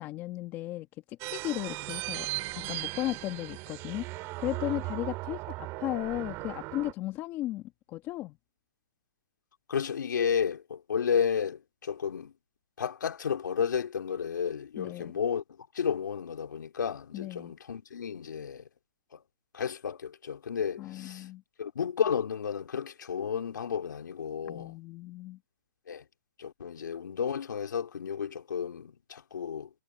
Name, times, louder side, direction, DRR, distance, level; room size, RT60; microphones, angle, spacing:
voice 1, 0.0-8.4 14.8-15.1 17.1-17.5 20.8-21.4 24.5-25.4, left 16 dB, 20° left, 1.3 m, -36 dB
sound 1, 1.2-6.9, right 21 dB, 25° right, 2.3 m, -37 dB
voice 2, 9.7-12.3 12.8-18.7 19.1-19.2 19.5-21.3 21.6-24.8 25.9-26.1 26.4-29.7, left 7 dB, 75° left, 3.6 m, -32 dB
hypercardioid pair, 155°, 10 cm